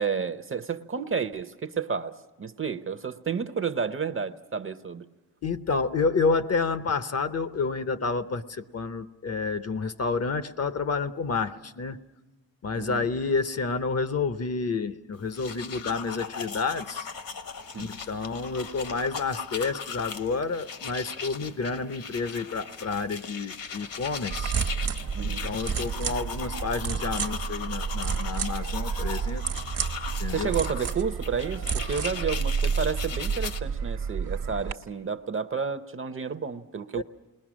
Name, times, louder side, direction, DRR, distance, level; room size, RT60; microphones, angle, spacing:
voice 1, 0.0-5.1 12.8-13.1 17.7-17.9 25.1-25.5 30.3-37.0, right 6 dB, 35° right, 11 dB, 0.7 m, -31 dB
voice 2, 5.4-12.0 12.6-17.1 17.8-24.5 25.2-29.4 30.2-30.6 36.9-37.0, left 4 dB, 45° left, 11 dB, 0.7 m, -29 dB
sound 1, 15.2-33.6, left 5 dB, 65° left, 1.3 m, -38 dB
sound 2, 24.3-34.7, right 6 dB, 60° right, 1.1 m, -30 dB
28.5 x 21.0 x 6.2 m, 1.1 s
wide cardioid pair, 125°, 36 cm